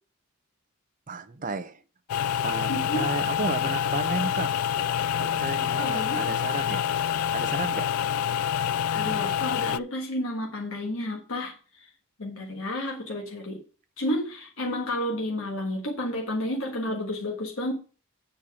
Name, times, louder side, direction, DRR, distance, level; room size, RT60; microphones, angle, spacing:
voice 1, 1.1-1.8 2.4-4.5 5.1-6.9 7.3-7.9, right 3 dB, 35° right, 0.7 m, -33 dB
sound 1, 2.1-9.8, left 9 dB, 85° left, 0.3 m, -27 dB
voice 2, 2.7-3.1 5.8-6.2 8.9-11.9 12.2-13.6 14.0-17.7, left 1 dB, 65° left, 1.5 m, -31 dB
8.5 x 4.5 x 6.3 m
head